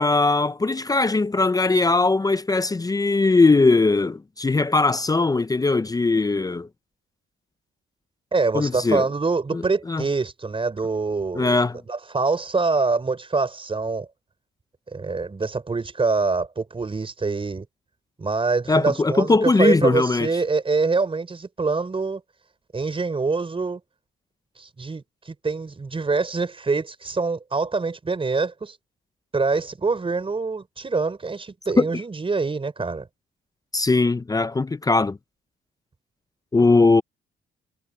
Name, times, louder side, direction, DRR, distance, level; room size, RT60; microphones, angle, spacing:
voice 1, 0.0-6.7 8.5-9.0 9.5-9.6 9.9-10.0 11.3-11.8 18.7-20.3 31.8-31.9 33.7-35.2 36.5-37.0, left 3 dB, 20° left, 0.6 m, -20 dB
voice 2, 8.3-11.6 11.9-14.1 14.9-17.7 18.2-22.2 22.7-23.8 24.6-28.8 29.3-33.1, right 4 dB, 25° right, 5.0 m, -25 dB
cardioid pair, 90°, 20 cm